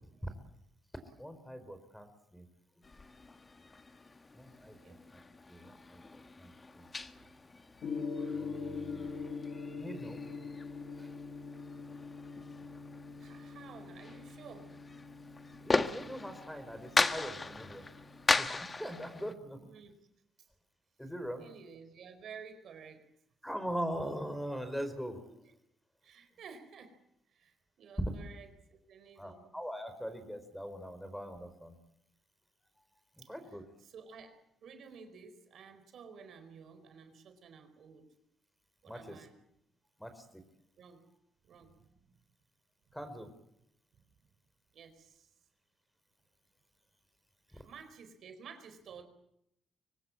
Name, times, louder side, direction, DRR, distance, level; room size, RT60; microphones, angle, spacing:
voice 1, 1.2-2.5 4.3-4.9 5.5-6.9 8.3-9.1 9.8-10.2 11.0-11.1 15.6-17.8 18.4-19.6 21.0-21.5 23.4-25.2 29.2-31.8 33.3-33.6 38.9-39.2 40.0-40.4 42.9-43.3, equal, 5° left, 10 dB, 4.6 m, -42 dB
sound 1, 2.8-19.3, left 3 dB, 25° left, 1.5 m, -38 dB
Gong, 7.8-18.5, left 4 dB, 60° left, 2.8 m, -43 dB
voice 2, 13.2-14.7 19.6-20.0 20.4-20.5 21.4-23.1 25.2-25.4 26.0-27.0 27.3-29.5 33.2-33.3 33.8-38.1 38.8-39.3 40.8-41.0 41.4-42.1 42.9-43.0 43.9-44.0 44.7-45.3 47.5-49.0, right 6 dB, 65° right, 8 dB, 4.4 m, -53 dB
24.5 x 18.5 x 8.6 m, 0.79 s
cardioid pair, 90°, 0 cm